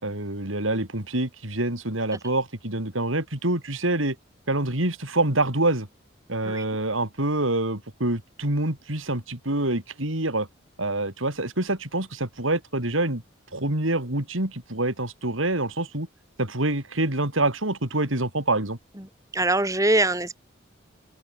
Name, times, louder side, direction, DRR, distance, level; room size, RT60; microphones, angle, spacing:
voice 1, 0.0-4.2 4.5-5.9 6.3-10.5 10.8-13.2 13.5-16.1 16.4-18.8, right 2 dB, 85° right, 4.5 m, -26 dB
voice 2, 19.3-20.4, right 2 dB, 15° right, 2.3 m, -23 dB
open air
head